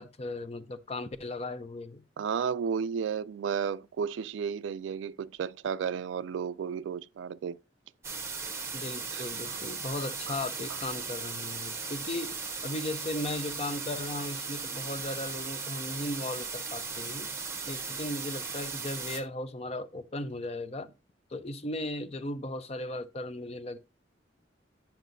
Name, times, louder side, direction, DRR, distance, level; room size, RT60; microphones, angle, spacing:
voice 1, 0.0-2.0 8.7-17.3 17.7-20.9 21.3-23.8, left 1 dB, 35° left, 0.5 m, -37 dB
voice 2, 2.2-7.6 9.1-9.6 10.3-10.4, right 7 dB, 75° right, 0.3 m, -33 dB
sound 1, 8.0-19.2, right 5 dB, 15° right, 0.8 m, -37 dB
9.2 x 5.8 x 2.6 m
head